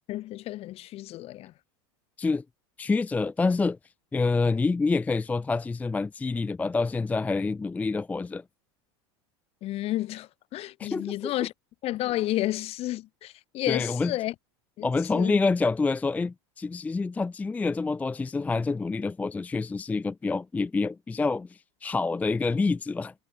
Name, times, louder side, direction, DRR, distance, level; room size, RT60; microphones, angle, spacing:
voice 1, 0.0-1.5 9.6-11.5 11.8-14.3 14.8-15.4, left 15 dB, 45° left, 1.7 m, -31 dB
voice 2, 2.8-3.8 4.1-8.4 10.8-11.3 13.7-14.1 14.8-23.1, left 3 dB, 10° left, 0.4 m, -27 dB
hypercardioid pair, 105°, 14 cm